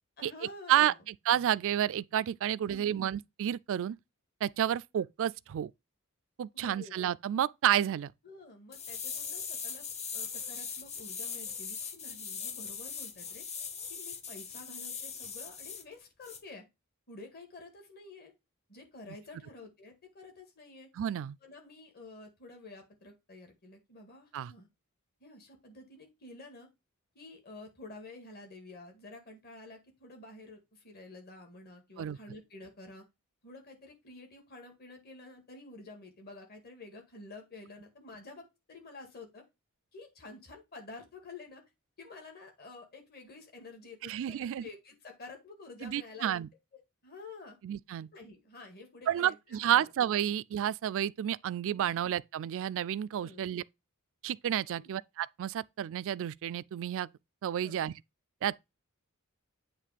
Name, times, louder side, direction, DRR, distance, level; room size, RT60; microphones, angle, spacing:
voice 1, 0.2-1.0 2.7-3.1 6.5-6.9 8.2-9.8 10.1-13.5 13.9-16.6 17.1-18.3 18.7-20.9 21.4-24.7 25.2-26.7 27.2-33.0 33.4-39.4 39.9-41.6 42.0-46.4 47.0-47.6 48.1-49.9 51.8-52.0 53.2-53.5 54.8-54.9 57.6-57.9, left 3 dB, 45° left, 1.9 m, -50 dB
voice 2, 0.7-4.0 4.4-5.7 6.4-8.1 21.0-21.4 24.3-24.5 32.0-32.2 44.0-44.7 45.8-46.5 47.6-48.1 49.1-53.6 54.2-57.1 57.4-57.9 58.4-58.6, right 10 dB, 60° right, 0.3 m, -30 dB
sound 1, 8.7-15.8 16.2-16.4, left 6 dB, 30° left, 0.8 m, -40 dB
8.4 x 3.0 x 5.0 m
head